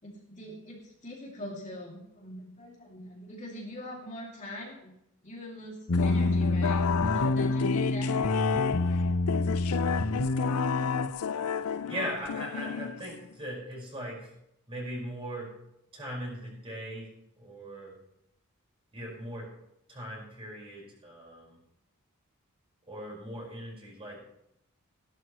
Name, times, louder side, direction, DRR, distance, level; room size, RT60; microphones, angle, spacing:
voice 1, 0.0-4.9 5.2-8.1, left 1 dB, 35° left, -3 dB, 2.7 m, -43 dB
sound 1, 5.9-13.3, left 7 dB, 85° left, 0.4 m, -32 dB
sound 2, 5.9-11.1, left 2 dB, 65° left, 0.9 m, -27 dB
voice 2, 11.9-14.3 14.7-15.5 15.9-17.1 17.4-18.0 18.9-19.5 19.9-21.6 22.9-24.2, equal, 25° right, -4 dB, 5.5 m, -39 dB
16.5 x 12.0 x 3.2 m, 0.80 s
head